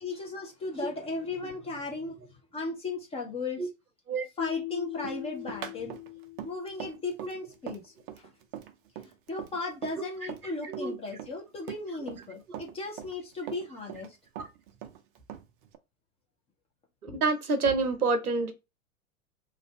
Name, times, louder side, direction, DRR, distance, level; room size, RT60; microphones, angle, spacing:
voice 1, 0.0-2.2 2.5-3.6 4.4-5.9 6.4-8.3 9.3-14.2 17.1-17.2, left 3 dB, 15° left, 0.6 m, -36 dB
Keyboard (musical), 4.4-7.2, left 20 dB, 50° left, 1.3 m, -40 dB
Run, 5.0-10.5 10.7-12.3 12.5-14.1 14.4-15.8, right 10 dB, 40° right, 0.4 m, -42 dB
voice 2, 10.6-10.9 12.5-12.6 14.4-14.5 17.0-18.5, right 4 dB, 85° right, 0.7 m, -28 dB
2.5 x 2.2 x 3.2 m
figure-of-eight pair, 95°, 43 cm